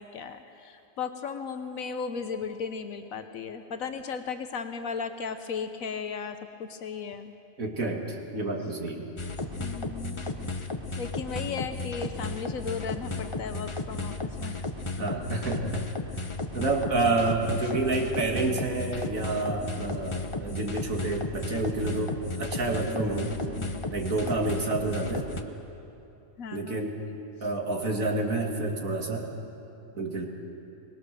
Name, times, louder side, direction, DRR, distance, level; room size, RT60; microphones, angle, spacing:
voice 1, 0.0-7.3 9.6-10.5 11.0-14.6 15.4-15.5 17.6-17.8 22.9-23.9 25.0-25.2 26.4-26.9, left 5 dB, 75° left, 8 dB, 1.3 m, -36 dB
voice 2, 7.6-9.1 15.0-15.8 16.5-22.1 22.4-23.3 23.9-25.3 26.5-27.0 27.4-29.3 30.0-30.3, right 2 dB, 80° right, 1 dB, 2.6 m, -29 dB
sound 1, 9.2-25.4, left 2 dB, 25° left, 1.0 m, -34 dB
22.5 x 20.5 x 6.8 m, 2.8 s
omnidirectional pair, 1.4 m